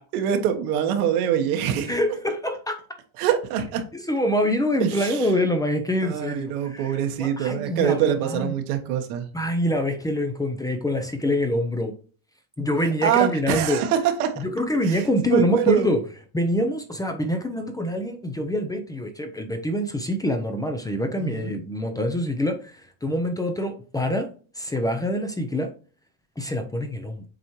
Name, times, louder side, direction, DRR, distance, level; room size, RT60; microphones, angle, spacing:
voice 1, 0.0-1.9 3.2-3.8 4.8-5.3 6.0-9.3 12.8-14.4 14.8-15.9 21.2-21.5, right 9 dB, 80° right, 5 dB, 1.4 m, -24 dB
voice 2, 1.9-2.8 4.1-8.5 9.3-11.9 12.6-13.8 14.4-16.0 16.3-24.3 24.6-25.7 26.4-27.2, equal, 10° left, 6 dB, 0.6 m, -25 dB
7.5 x 4.2 x 3.1 m, 0.39 s
supercardioid pair, 125°, 44 cm